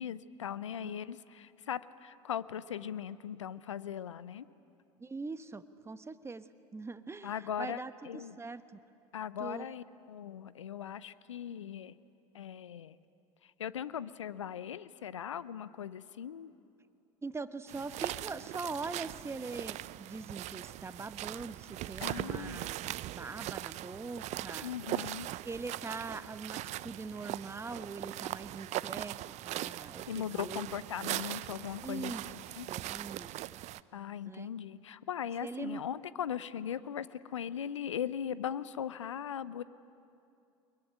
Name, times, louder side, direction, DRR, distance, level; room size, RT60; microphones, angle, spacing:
voice 1, 0.0-4.5 7.2-8.4 9.1-12.0 12.3-13.0 13.4-16.5 22.0-22.7 24.6-25.3 30.1-32.7 33.9-39.6, left 9 dB, 85° left, 17 dB, 0.6 m, -39 dB
voice 2, 5.0-6.4 6.7-7.3 7.6-8.8 9.4-9.7 17.2-24.7 25.4-29.1 29.4-30.7 31.0-31.2 31.8-32.2 32.7-33.6 34.2-34.5 35.4-35.8, right 4 dB, 15° right, 12 dB, 1.2 m, -42 dB
sound 1, 17.7-33.8, right 15 dB, 50° right, 0.6 m, -40 dB
23.5 x 21.5 x 9.9 m, 2.6 s
hypercardioid pair, 70°, 15 cm